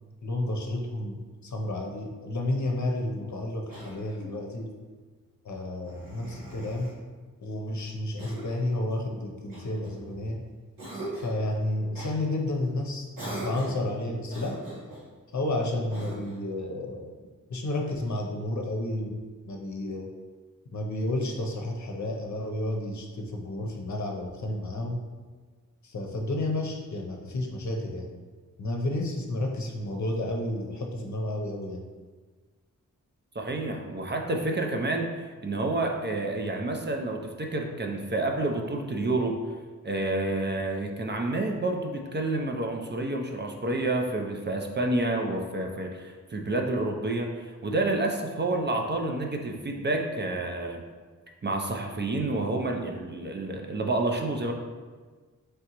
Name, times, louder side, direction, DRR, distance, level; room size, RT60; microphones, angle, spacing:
voice 1, 0.2-4.7 5.4-6.9 7.4-10.4 11.1-14.6 15.3-17.1 17.5-20.1 20.7-25.0 25.8-28.1 28.6-31.8, left 1 dB, 55° left, 1 dB, 0.7 m, -31 dB
Cough, 3.7-4.4 5.8-7.0 8.2-8.7 9.5-10.3 10.8-11.4 11.9-12.1 13.1-13.9 14.3-15.1 15.9-16.5, right 1 dB, 85° right, 1.4 m, -40 dB
voice 2, 33.3-39.4 39.8-50.8 51.4-54.5, right 2 dB, 30° right, 2 dB, 0.5 m, -29 dB
3.7 x 3.3 x 2.9 m, 1.4 s
cardioid pair, 50°, 34 cm